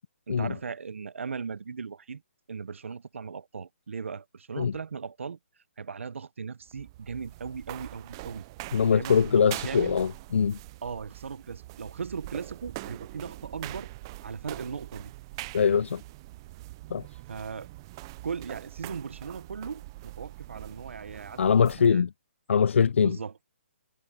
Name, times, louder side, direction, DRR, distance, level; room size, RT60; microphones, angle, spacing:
voice 1, 0.3-2.2 2.5-5.4 5.8-8.4 8.8-10.0 10.8-13.9 14.2-15.1 17.3-17.7 18.2-22.0 23.0-23.3, right 5 dB, 75° right, 0.9 m, -38 dB
sound 1, 6.6-21.9, right 19 dB, 20° right, 0.4 m, -43 dB
voice 2, 8.7-10.6 15.5-16.0 16.9-17.0 21.4-22.1 22.5-23.2, left 6 dB, 70° left, 0.4 m, -22 dB
hypercardioid pair, 160°, 7 cm